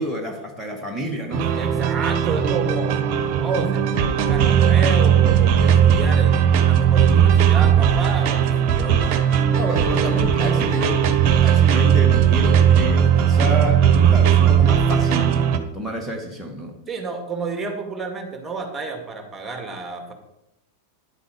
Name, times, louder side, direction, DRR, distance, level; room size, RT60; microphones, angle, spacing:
voice 1, 0.0-1.8 9.5-15.4 15.7-16.8, equal, 5° left, 1 dB, 1.8 m, -29 dB
sound 1, 1.3-15.6, right 8 dB, 40° right, 1.2 m, -17 dB
voice 2, 1.5-3.0 3.3-6.3 6.6-9.2 9.8-9.9 16.9-20.1, right 4 dB, 15° right, 5 dB, 2.0 m, -30 dB
10.5 x 8.1 x 5.2 m, 0.85 s
figure-of-eight pair, 90°, 0 cm